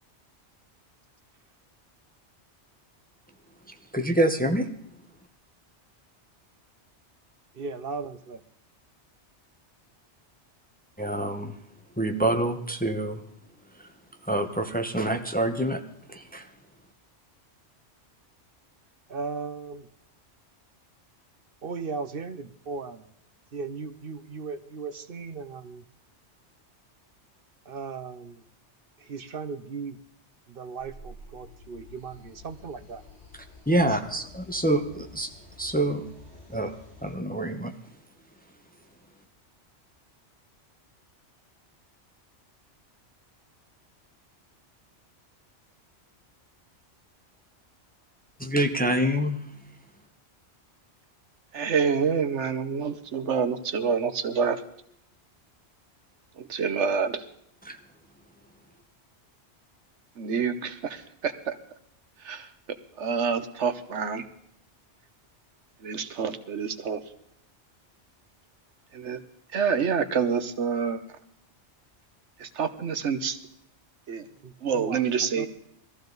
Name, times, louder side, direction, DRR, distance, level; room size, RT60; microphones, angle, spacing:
voice 1, 3.9-4.7 11.0-11.5 12.0-13.2 14.3-15.8 16.1-16.5 33.7-35.3 35.6-36.0 36.5-36.7 37.0-37.7 48.4-49.4 57.6-57.8, right 1 dB, 10° left, 6 dB, 0.9 m, -26 dB
voice 2, 7.5-8.4 19.1-19.9 21.6-23.0 23.5-25.8 27.7-28.4 29.0-30.0 30.5-33.0 74.4-75.0 75.3-75.5, right 4 dB, 55° right, 11 dB, 1.0 m, -37 dB
sound 1, 30.8-37.1, left 2 dB, 30° left, 4.4 m, -50 dB
voice 3, 51.5-54.6 56.5-57.2 60.2-61.5 62.2-62.5 63.0-64.2 65.8-67.0 68.9-69.2 69.5-71.0 72.4-73.4 74.1-74.2 74.6-75.5, right 6 dB, 80° right, 10 dB, 1.3 m, -27 dB
21.0 x 14.5 x 4.0 m, 0.72 s
omnidirectional pair, 1.2 m